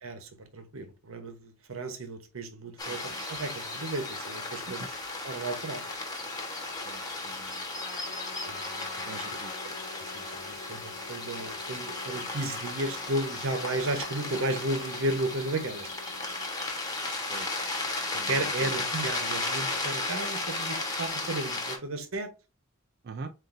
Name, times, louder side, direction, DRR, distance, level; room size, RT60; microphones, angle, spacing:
voice 1, 0.0-4.9 5.2-5.8 8.5-9.2 10.1-15.9 18.3-22.3, right 2 dB, 85° right, 1.0 m, -34 dB
sound 1, 2.8-21.8, left 2 dB, 20° left, 1.2 m, -35 dB
voice 2, 2.9-3.2 4.7-4.9 6.8-7.6 9.1-9.8 17.3-17.5 18.2-18.9 23.0-23.3, right 4 dB, 50° right, 0.4 m, -44 dB
Trumpet, 7.7-16.5, left 4 dB, 40° left, 1.0 m, -46 dB
7.6 x 2.6 x 2.6 m
head